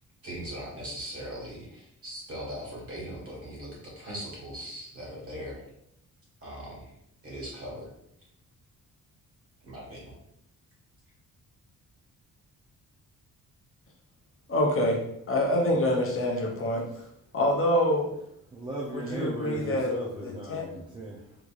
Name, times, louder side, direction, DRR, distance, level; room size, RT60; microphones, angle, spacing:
voice 1, 0.2-5.6 6.4-6.9 7.2-7.9 9.6-10.1, equal, 40° right, -4 dB, 1.4 m, -39 dB
voice 2, 14.5-15.0 15.3-16.9 17.3-18.1 18.9-19.9 20.2-20.6, left 1 dB, 40° left, 0 dB, 0.5 m, -26 dB
voice 3, 18.5-21.4, right 1 dB, 15° right, -4 dB, 0.3 m, -37 dB
3.7 x 3.0 x 2.3 m, 0.78 s
wide cardioid pair, 170°, 34 cm